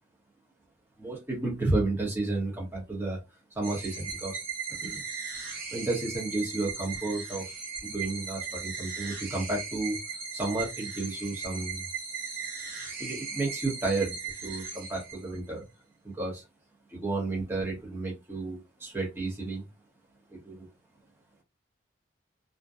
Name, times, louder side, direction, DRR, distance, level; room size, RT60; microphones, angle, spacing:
voice 1, 1.0-3.2 3.5-4.4 4.8-5.0 5.7-7.5 7.8-10.0 10.3-11.8 13.0-15.6 16.0-16.4 16.9-19.7 20.3-20.7, right 2 dB, 10° right, -3 dB, 0.8 m, -32 dB
sound 1, 3.6-15.5, right 5 dB, 45° right, 0.8 m, -38 dB
2.6 x 2.1 x 2.4 m, 0.22 s
head